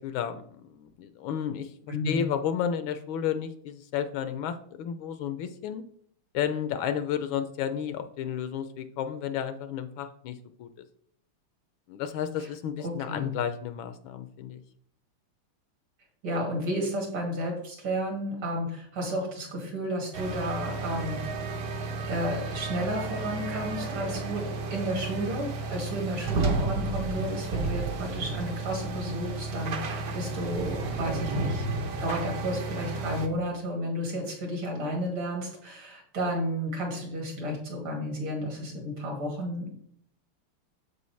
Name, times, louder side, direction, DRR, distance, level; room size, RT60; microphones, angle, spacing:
voice 1, 0.0-5.8 6.3-10.8 11.9-14.6, left 9 dB, 75° left, 10 dB, 1.3 m, -32 dB
voice 2, 1.9-2.2 12.4-12.5 12.8-13.3 16.2-21.3 22.1-31.7 32.0-39.7, equal, 70° right, 0 dB, 3.2 m, -32 dB
sound 1, 20.1-33.3, right 3 dB, 55° right, 1.2 m, -32 dB
8.2 x 7.6 x 3.2 m, 0.66 s
omnidirectional pair, 2.4 m